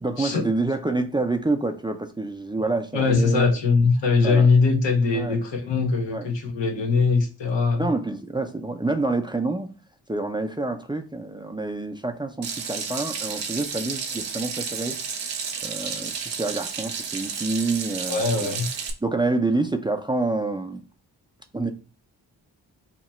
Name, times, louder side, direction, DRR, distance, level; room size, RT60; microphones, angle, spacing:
voice 1, 0.0-3.6 4.2-4.5 5.1-5.4 6.1-6.3 7.7-9.7 10.1-15.0 15.6-18.6 19.0-20.8 21.5-21.7, right 2 dB, 10° right, 0.4 m, -27 dB
voice 2, 2.9-7.9 18.1-18.7, left 4 dB, 80° left, 0.9 m, -21 dB
Water tap faucet / Sink (filling or washing), 12.4-18.9, right 6 dB, 85° right, 0.6 m, -32 dB
2.9 x 2.2 x 4.1 m
supercardioid pair, 40°, 43 cm